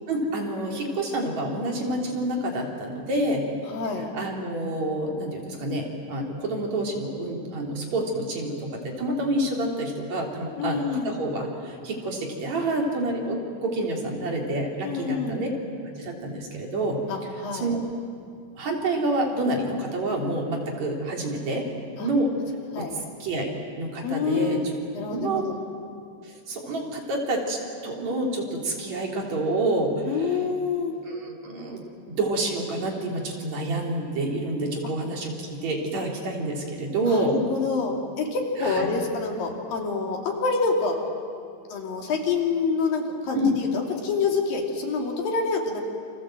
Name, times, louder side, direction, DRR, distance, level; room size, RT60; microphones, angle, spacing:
voice 1, 0.1-3.5 4.1-15.5 16.0-17.0 17.5-17.8 18.6-21.7 22.0-22.3 22.8-24.6 25.1-25.5 26.2-27.6 27.8-30.3 31.1-31.8 32.1-37.4 38.6-38.9 43.3-43.5, right 1 dB, 55° right, 0 dB, 4.4 m, -28 dB
voice 2, 3.7-4.1 10.6-11.2 14.8-15.5 17.1-17.7 22.0-22.1 22.7-23.0 24.0-24.7 24.9-25.6 30.1-30.9 37.1-41.0 41.7-45.8, left 4 dB, 80° left, 1 dB, 4.6 m, -27 dB
29.0 x 26.0 x 7.8 m, 2.3 s
omnidirectional pair, 4.0 m